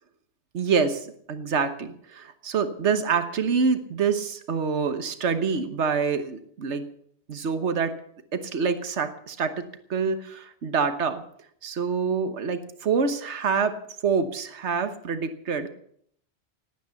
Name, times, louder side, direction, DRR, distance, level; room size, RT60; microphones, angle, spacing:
voice 1, 0.5-6.9 7.3-7.9 8.3-9.6 9.9-11.2 11.6-13.8 14.0-15.7, right 5 dB, 75° right, 9 dB, 1.5 m, -26 dB
18.5 x 9.2 x 7.1 m, 0.65 s
omnidirectional pair, 1.2 m